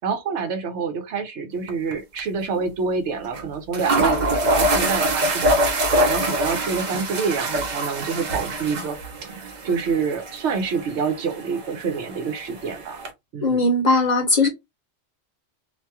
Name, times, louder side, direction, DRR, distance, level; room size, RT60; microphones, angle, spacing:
voice 1, 0.0-13.0 13.3-13.6, right 5 dB, 75° right, 1.0 m, -27 dB
sound 1, 1.7-1.9 2.2-2.3 3.3-3.4 3.7-13.1, right 1 dB, 45° right, 0.7 m, -25 dB
voice 2, 13.4-14.5, left 2 dB, 45° left, 0.8 m, -19 dB
2.6 x 2.3 x 2.7 m
omnidirectional pair, 1.2 m